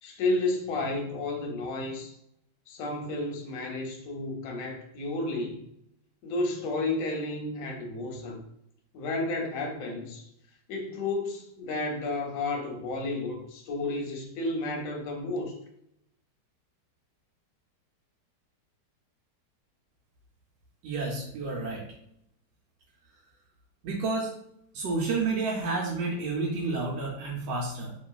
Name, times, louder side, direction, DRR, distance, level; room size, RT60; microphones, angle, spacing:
voice 1, 0.0-2.1 2.7-5.7 6.2-8.4 8.9-10.2 10.7-15.6, left 2 dB, 65° left, 1 dB, 0.9 m, -32 dB
voice 2, 20.8-21.9 23.8-24.3 24.7-27.9, right 3 dB, 90° right, -2 dB, 1.2 m, -30 dB
2.9 x 2.5 x 2.3 m, 0.75 s
omnidirectional pair, 1.8 m